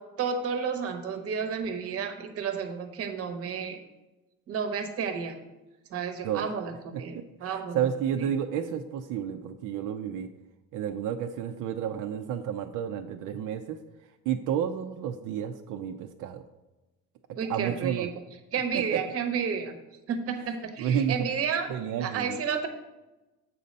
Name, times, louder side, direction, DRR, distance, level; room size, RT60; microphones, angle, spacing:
voice 1, 0.0-3.8 4.5-5.4 5.9-7.9 8.2-8.3 17.4-18.1 18.5-19.7 20.1-21.7 22.0-22.7, right 6 dB, 50° right, 7 dB, 0.9 m, -31 dB
voice 2, 7.4-10.3 10.7-13.8 14.3-16.4 17.5-18.1 18.7-19.0 20.8-21.1 21.7-22.4, right 9 dB, 85° right, 5 dB, 0.5 m, -31 dB
7.6 x 4.1 x 5.2 m, 1.1 s
cardioid pair, 160°, 31 cm